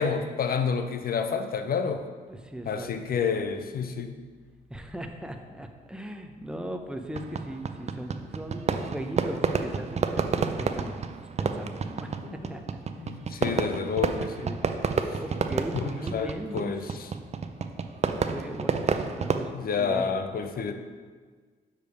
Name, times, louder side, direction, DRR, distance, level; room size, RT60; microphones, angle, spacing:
voice 1, 0.0-2.0 2.7-4.1 12.2-12.3 13.0-14.5 15.1-15.2 16.1-16.8 19.5-20.7, left 6 dB, 50° left, 8 dB, 0.7 m, -29 dB
voice 2, 2.3-3.2 4.7-12.8 14.4-16.8 17.8-20.2 20.5-20.7, right 1 dB, 5° right, 5 dB, 0.7 m, -39 dB
Fireworks, 7.1-19.4, right 5 dB, 35° right, 0.5 m, -30 dB
6.7 x 3.3 x 5.3 m, 1.5 s
supercardioid pair, 55°, 19 cm